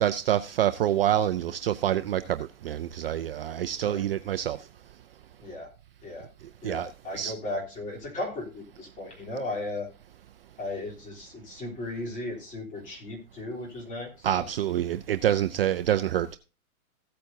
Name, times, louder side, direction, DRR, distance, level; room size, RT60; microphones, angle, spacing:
voice 1, 0.0-4.7 6.6-7.3 14.2-16.4, right 11 dB, 45° right, 0.5 m, -27 dB
voice 2, 6.6-9.9 10.6-14.5, left 2 dB, 20° left, 3.4 m, -36 dB
15.5 x 8.5 x 2.7 m
hypercardioid pair, 140°, 44 cm